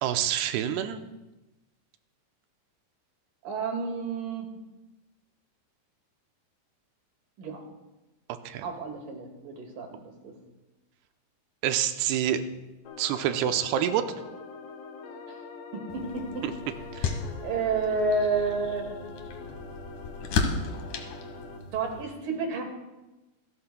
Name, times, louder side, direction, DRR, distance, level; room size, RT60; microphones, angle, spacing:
voice 1, 0.0-1.0 8.3-8.6 11.6-12.4 13.0-14.0 16.9-17.1, right 10 dB, 90° right, 8 dB, 2.7 m, -27 dB
voice 2, 3.4-4.5 7.4-7.6 8.6-10.3 15.3-15.4 15.7-16.5 17.4-18.9 21.7-22.6, right 4 dB, 60° right, 3 dB, 3.1 m, -30 dB
sound 1, 12.9-21.6, left 4 dB, 90° left, 3.7 m, -44 dB
sound 2, 15.9-22.0, left 4 dB, 65° left, 2.2 m, -34 dB
27.0 x 12.5 x 2.2 m, 1.0 s
omnidirectional pair, 4.7 m